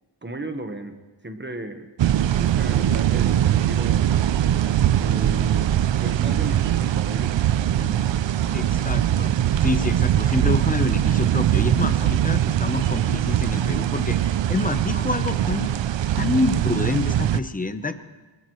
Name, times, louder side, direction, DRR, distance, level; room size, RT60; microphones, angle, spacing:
voice 1, 0.2-1.0 1.2-1.9 2.3-4.1 4.9-8.9, right 1 dB, 20° right, 6 dB, 1.3 m, -36 dB
sound 1, 2.0-17.4, right 11 dB, 65° right, 0.6 m, -21 dB
voice 2, 8.5-15.7 16.2-18.0, left 3 dB, 15° left, 9 dB, 0.9 m, -27 dB
21.5 x 21.0 x 3.2 m, 1.2 s
wide cardioid pair, 110°, 49 cm